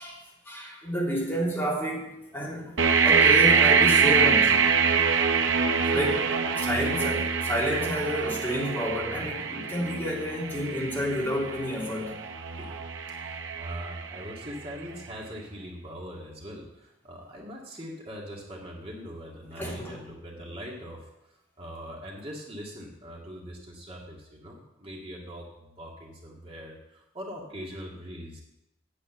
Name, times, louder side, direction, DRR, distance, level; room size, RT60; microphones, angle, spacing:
voice 1, 0.0-4.6 5.4-5.5 5.9-12.2 19.6-20.0, equal, 10° left, -5 dB, 3.3 m, -30 dB
sound 1, 2.8-14.6, right 6 dB, 75° right, 0.8 m, -24 dB
voice 2, 13.1-28.4, equal, 30° right, -2 dB, 2.0 m, -41 dB
8.8 x 7.9 x 8.0 m, 0.88 s
head